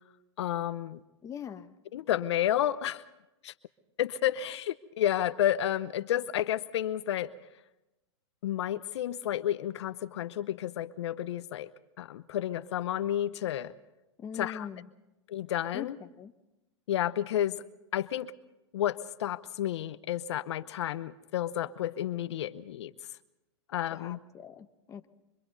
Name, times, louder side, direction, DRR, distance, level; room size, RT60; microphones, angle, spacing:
voice 1, 0.4-1.0 1.9-3.0 3.4-3.5 4.0-7.3 8.4-11.7 12.0-13.7 14.3-14.7 15.3-16.0 16.9-17.6 17.9-18.3 18.7-22.9 23.7-24.2, left 11 dB, 70° left, 14 dB, 0.8 m, -31 dB
voice 2, 1.2-1.7 14.2-14.9 15.7-16.3 23.9-25.0, left 8 dB, 20° left, 8 dB, 1.0 m, -42 dB
28.0 x 24.5 x 4.0 m, 0.97 s
hypercardioid pair, 125°, 15 cm